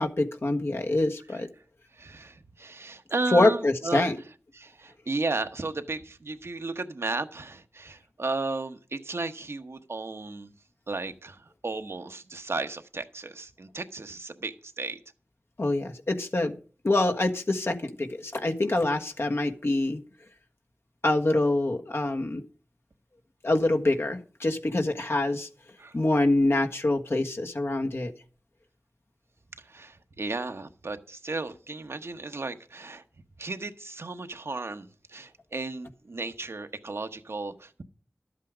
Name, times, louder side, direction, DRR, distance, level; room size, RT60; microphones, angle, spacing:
voice 1, 0.0-1.5 3.3-4.1 15.6-16.6 16.8-20.0 21.0-22.4 23.4-25.5 25.9-28.1, left 2 dB, 65° left, 3 dB, 1.4 m, -25 dB
voice 2, 1.9-4.1 4.5-10.5 10.9-15.0 25.8-26.0 29.6-33.0 33.4-37.8, right 3 dB, 75° right, 8 dB, 1.0 m, -34 dB
12.0 x 8.3 x 5.0 m, 0.40 s
wide cardioid pair, 55°, 4 cm